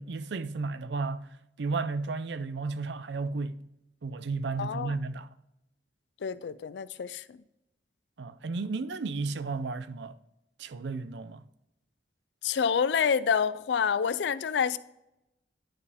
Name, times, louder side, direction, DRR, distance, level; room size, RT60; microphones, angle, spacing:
voice 1, 0.0-3.6 4.0-5.3 8.2-10.2 10.6-11.4, right 4 dB, 80° right, 0.5 m, -33 dB
voice 2, 4.6-4.9 6.2-7.4 12.4-14.8, left 6 dB, 80° left, 0.4 m, -28 dB
11.0 x 4.4 x 3.5 m
head